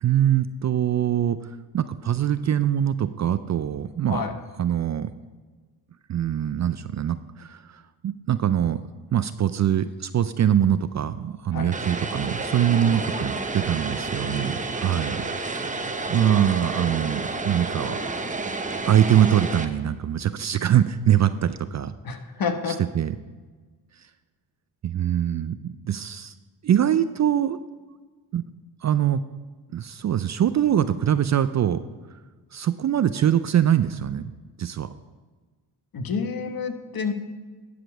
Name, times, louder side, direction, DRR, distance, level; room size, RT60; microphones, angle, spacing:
voice 1, 0.0-1.4 1.7-4.2 4.6-5.1 6.1-8.8 9.1-15.2 16.1-18.0 18.9-21.9 23.0-23.1 24.8-26.3 26.6-27.6 28.3-28.4 28.8-29.2 29.7-31.8 32.5-34.3 34.6-34.9, right 10 dB, 40° right, 13 dB, 0.4 m, -23 dB
Vehicle, 11.7-19.7, right 3 dB, 15° right, 0.8 m, -30 dB
voice 2, 12.7-13.0 14.9-15.1 22.0-22.8 35.9-37.1, left 5 dB, 50° left, 7 dB, 1.3 m, -29 dB
11.5 x 5.1 x 6.0 m, 1.3 s
supercardioid pair, 65°, 46 cm